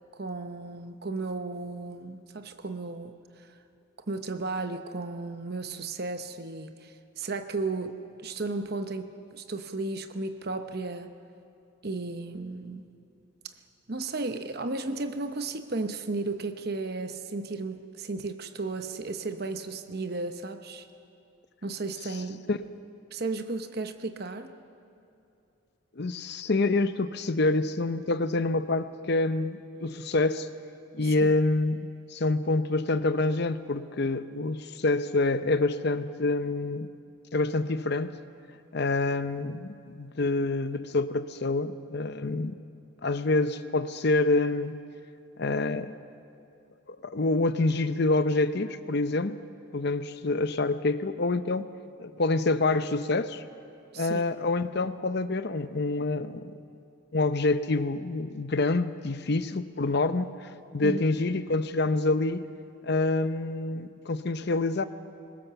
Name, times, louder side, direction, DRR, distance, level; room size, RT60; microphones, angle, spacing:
voice 1, 0.1-3.1 4.1-8.0 8.2-11.1 11.8-12.9 13.9-20.9 21.6-22.4 23.1-24.5 31.2-31.3 53.9-54.2 60.8-61.0, right 3 dB, 50° right, 8 dB, 0.9 m, -34 dB
voice 2, 26.0-30.5 30.9-36.9 37.3-38.2 38.7-42.6 43.0-44.8 45.4-45.9 46.9-49.4 49.7-51.7 52.0-53.4 54.0-56.5 57.1-62.5 62.8-64.8, left 2 dB, 55° left, 11 dB, 0.7 m, -27 dB
22.0 x 19.0 x 6.9 m, 2.6 s
head